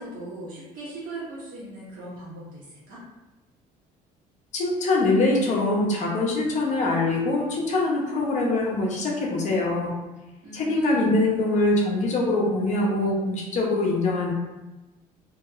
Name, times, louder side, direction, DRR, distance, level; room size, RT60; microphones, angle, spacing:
voice 1, 0.0-3.0 10.4-11.2, right 1 dB, 65° right, -7 dB, 1.5 m, -37 dB
voice 2, 4.5-9.9 10.5-14.3, left 2 dB, 50° left, -2 dB, 0.8 m, -23 dB
2.9 x 2.8 x 2.4 m, 1.1 s
cardioid pair, 120°, 16 cm